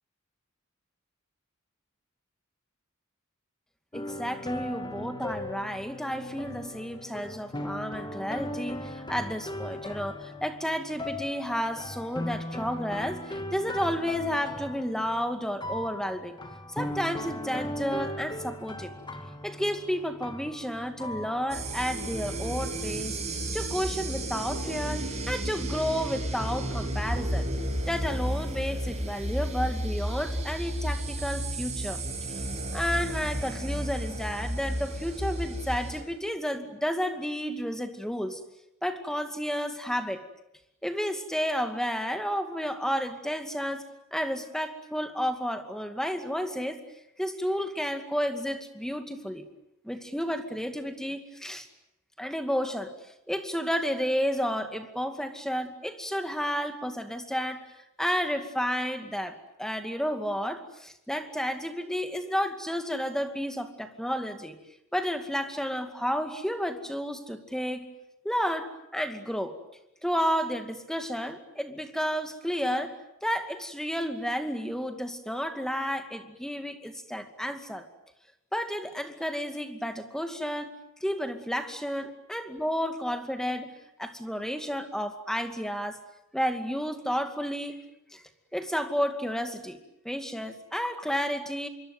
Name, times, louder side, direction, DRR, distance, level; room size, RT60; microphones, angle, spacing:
sound 1, 3.9-22.5, left 1 dB, 20° left, 2.4 m, -38 dB
voice 1, 3.9-16.3 16.8-18.9 19.4-23.2 23.5-27.4 27.9-32.0 32.7-38.4 38.8-40.2 40.8-43.8 44.1-46.8 47.2-49.5 49.8-51.7 52.2-52.9 53.3-57.6 58.0-64.6 64.9-67.9 68.2-69.5 70.0-73.0 73.2-77.9 78.5-80.7 81.0-83.7 84.0-86.0 86.3-87.8 88.1-88.2 88.5-89.8 90.0-91.7, equal, 5° left, 7 dB, 2.3 m, -31 dB
sound 2, 21.5-36.0, right 1 dB, 30° right, 6.7 m, -32 dB
26.5 x 23.5 x 9.3 m, 0.83 s
head